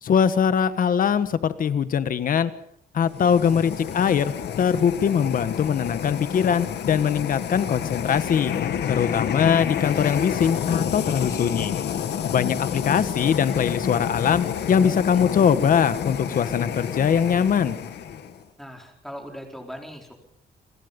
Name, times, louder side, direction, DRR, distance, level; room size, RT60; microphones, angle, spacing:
voice 1, 0.0-2.5 2.9-8.5 8.9-11.7 12.3-17.8, left 7 dB, 55° left, 13 dB, 1.4 m, -22 dB
sound 1, 3.0-18.4, left 8 dB, 80° left, 2.3 m, -29 dB
voice 2, 18.6-20.1, equal, ahead, 2 dB, 4.6 m, -40 dB
29.0 x 21.5 x 5.4 m, 0.67 s
wide cardioid pair, 155°, 17 cm